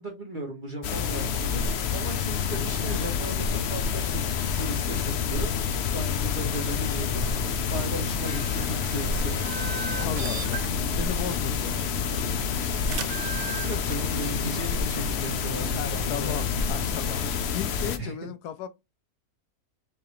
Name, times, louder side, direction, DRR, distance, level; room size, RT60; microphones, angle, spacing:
voice 1, 0.0-1.7 1.9-4.3 4.5-9.4 13.6-16.4 18.0-18.1, right 1 dB, 35° right, 1.2 m, -36 dB
sound 1, 0.8-18.0, left 6 dB, 65° left, 0.6 m, -28 dB
sound 2, 6.8-17.4, right 8 dB, 65° right, 0.7 m, -39 dB
voice 2, 10.0-12.6 15.7-17.2 17.5-18.7, left 9 dB, 80° left, 1.1 m, -35 dB
4.7 x 2.9 x 3.0 m
omnidirectional pair, 1.7 m